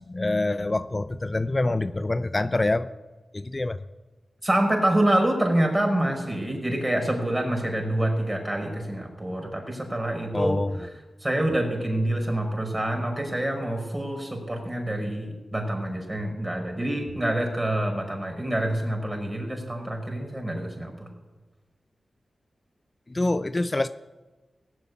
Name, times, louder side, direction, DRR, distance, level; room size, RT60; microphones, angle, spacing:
voice 1, 0.0-2.9 3.3-3.8 10.3-10.7 23.1-23.9, left 2 dB, 35° left, 12 dB, 0.5 m, -25 dB
voice 2, 4.4-10.5 11.2-20.9, right 1 dB, 25° right, 2 dB, 5.6 m, -26 dB
17.5 x 8.1 x 8.4 m, 1.2 s
cardioid pair, 40°, 0 cm